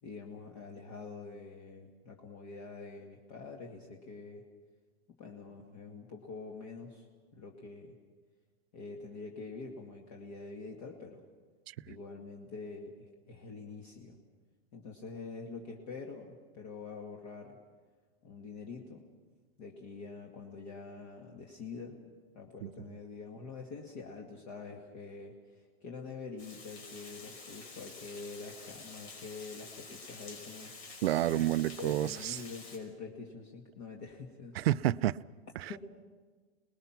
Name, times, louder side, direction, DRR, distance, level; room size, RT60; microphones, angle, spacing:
voice 1, 0.0-4.4 5.2-7.1 7.3-8.0 8.7-11.2 11.9-14.2 14.7-17.6 18.2-19.0 19.6-22.0 22.3-30.7 31.3-31.4 31.8-34.5 35.7-35.8, left 4 dB, 40° left, 2.1 m, -45 dB
Water, 26.4-32.8, left 3 dB, 80° left, 5.6 m, -49 dB
voice 2, 31.0-32.4 34.5-35.2 35.6-35.7, right 14 dB, 70° right, 0.6 m, -29 dB
28.0 x 20.0 x 5.9 m
supercardioid pair, 160°, 32 cm